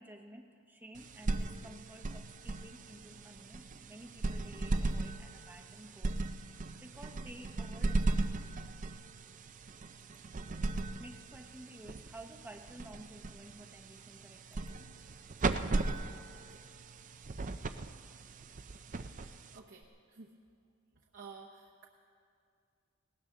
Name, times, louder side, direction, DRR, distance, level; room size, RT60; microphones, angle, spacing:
voice 1, 0.0-6.2 6.5-8.4 11.0-15.0, right 1 dB, 10° right, 3 dB, 0.9 m, -53 dB
sound 1, 0.9-19.8, right 2 dB, 35° right, 0.5 m, -37 dB
voice 2, 19.5-20.3 21.1-21.8, right 4 dB, 55° right, -2 dB, 1.0 m, -52 dB
19.0 x 18.0 x 3.8 m, 2.3 s
head